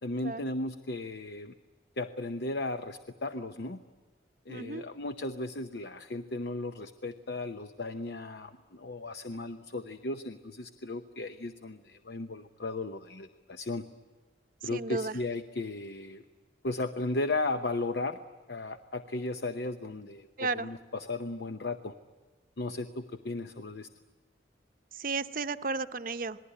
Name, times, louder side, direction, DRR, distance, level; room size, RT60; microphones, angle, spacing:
voice 1, 0.0-1.5 2.0-3.8 4.5-13.8 14.6-16.2 16.6-18.2 18.5-21.9 22.6-23.9, left 2 dB, 65° left, 9 dB, 0.8 m, -35 dB
voice 2, 4.5-4.8 14.7-15.1 20.4-20.7 24.9-26.4, right 4 dB, 45° right, 10 dB, 0.7 m, -33 dB
27.0 x 20.0 x 9.9 m, 1.4 s
head